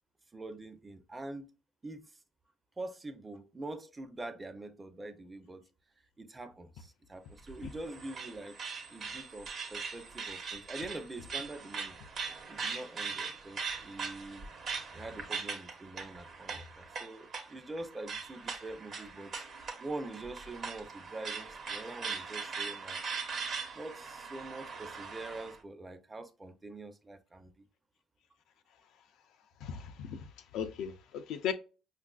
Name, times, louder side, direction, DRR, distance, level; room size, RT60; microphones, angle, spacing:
voice 1, 0.3-1.5 1.8-2.1 2.8-5.6 6.2-8.6 8.9-12.0 12.5-14.5 14.9-19.5 19.8-23.0 23.7-27.5, right 2 dB, 20° right, 0.5 m, -44 dB
sound 1, 7.4-25.6, right 5 dB, 55° right, 0.9 m, -41 dB
voice 2, 29.6-30.3 30.5-31.5, left 8 dB, 75° left, 0.4 m, -37 dB
5.2 x 2.4 x 2.3 m
supercardioid pair, 85°, 0 cm